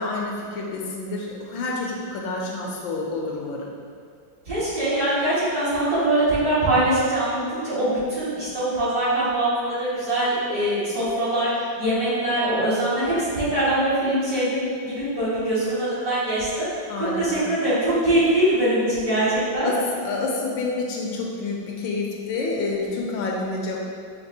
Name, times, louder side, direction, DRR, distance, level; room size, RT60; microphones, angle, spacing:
voice 1, 0.0-3.7 16.9-17.5 19.6-23.8, left 3 dB, 80° left, -2 dB, 1.3 m, -28 dB
voice 2, 4.5-11.5 11.8-16.7 17.0-19.7, right 1 dB, 50° right, -13 dB, 2.1 m, -23 dB
5.9 x 2.8 x 2.7 m, 2.3 s
omnidirectional pair, 2.1 m